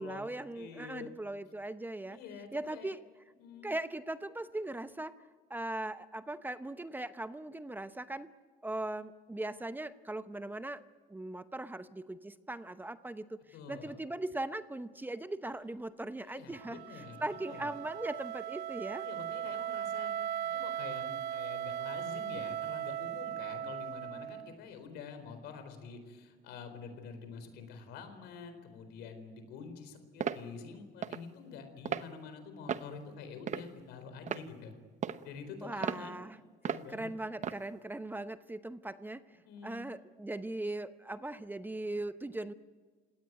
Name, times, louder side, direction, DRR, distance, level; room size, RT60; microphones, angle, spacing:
voice 1, 0.0-2.2 2.5-3.0 3.6-5.2 5.5-8.3 8.6-10.8 11.1-13.4 13.7-19.1 35.6-36.4 36.9-39.2 39.6-42.5, right 2 dB, 10° right, 12 dB, 0.8 m, -39 dB
voice 2, 0.5-1.1 2.1-2.9 3.4-3.7 13.5-14.0 16.2-17.7 18.9-20.1 20.4-34.7 35.2-36.3 36.6-37.1 39.4-39.9, left 5 dB, 85° left, 8 dB, 4.3 m, -47 dB
Wind instrument woodwind instrument, 16.5-24.5, right 10 dB, 80° right, 0.9 m, -38 dB
sound 1, 30.2-30.4 31.0-31.2 31.8-32.1 32.7-32.9 33.5-33.8 34.3-34.5 35.0-35.2 35.8-36.0 36.6-36.8 37.4-37.6, right 8 dB, 45° right, 1.0 m, -35 dB
29.5 x 18.0 x 9.3 m, 1.5 s
cardioid pair, 110°, 17 cm